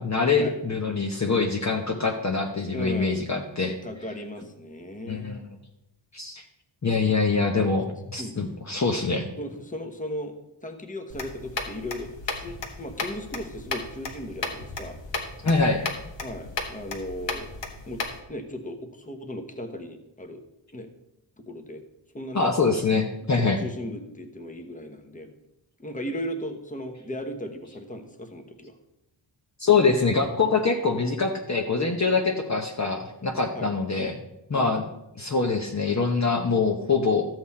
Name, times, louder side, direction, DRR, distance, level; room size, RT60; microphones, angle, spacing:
voice 1, 0.0-3.8 5.1-5.4 6.1-6.4 6.8-9.3 15.4-15.8 22.3-23.6 29.6-34.2 34.5-34.8 35.2-37.3, left 4 dB, 35° left, 2 dB, 0.9 m, -24 dB
voice 2, 2.7-3.2 3.8-5.5 8.2-8.5 9.4-10.3 10.6-15.0 16.2-17.5 17.9-18.0 18.3-20.4 20.7-20.9 21.4-21.9 22.1-22.5 23.3-25.3 25.8-28.8 33.5-33.7 34.5-34.7, left 1 dB, 15° left, 6 dB, 1.1 m, -36 dB
sound 1, 11.1-18.2, left 3 dB, 65° left, 1.6 m, -35 dB
13.0 x 7.9 x 4.3 m, 0.89 s
wide cardioid pair, 135°, 47 cm